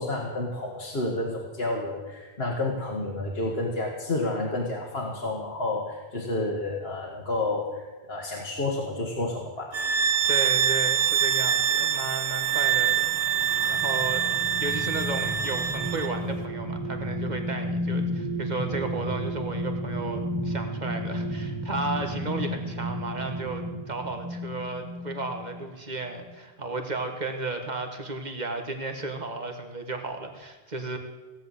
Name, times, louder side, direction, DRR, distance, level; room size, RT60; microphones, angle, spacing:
voice 1, 0.0-9.7, left 2 dB, 70° left, -1 dB, 1.9 m, -30 dB
sound 1, 9.7-16.1, right 9 dB, 75° right, 1.3 m, -25 dB
voice 2, 10.3-14.3 14.6-31.0, right 3 dB, 45° right, 5 dB, 1.7 m, -34 dB
sound 2, 12.9-25.7 26.2-26.4, equal, 25° right, 2.0 m, -33 dB
17.0 x 8.0 x 8.2 m, 1.2 s
omnidirectional pair, 1.1 m